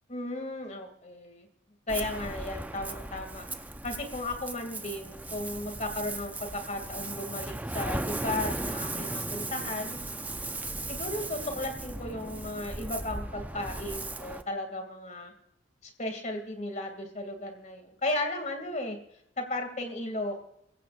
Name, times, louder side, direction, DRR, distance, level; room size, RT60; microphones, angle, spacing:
voice 1, 0.1-1.5 1.9-3.5 3.8-10.0 10.9-15.3 16.0-19.0 19.4-20.5, left 1 dB, 35° left, 4 dB, 2.6 m, -35 dB
Ocean, 1.9-14.4, right 2 dB, 10° right, 0.6 m, -37 dB
24.5 x 15.5 x 2.6 m, 0.78 s
head